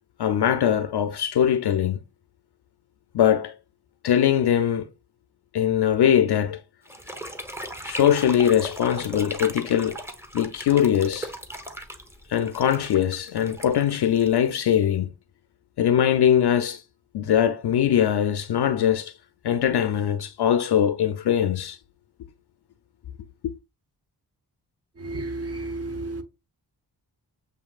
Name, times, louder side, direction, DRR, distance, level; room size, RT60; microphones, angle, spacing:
voice 1, 0.2-2.0 3.1-3.5 4.0-4.9 5.5-6.6 7.8-10.0 10.3-11.3 12.3-15.1 15.8-16.8 17.1-19.1 19.4-21.8 23.4-23.5, left 9 dB, 65° left, 0.5 m, -21 dB
sound 1, 6.9-14.9, right 1 dB, 5° right, 0.9 m, -38 dB
voice 2, 25.0-26.2, right 2 dB, 35° right, 1.0 m, -32 dB
7.2 x 2.7 x 2.3 m
cardioid pair, 55°, 43 cm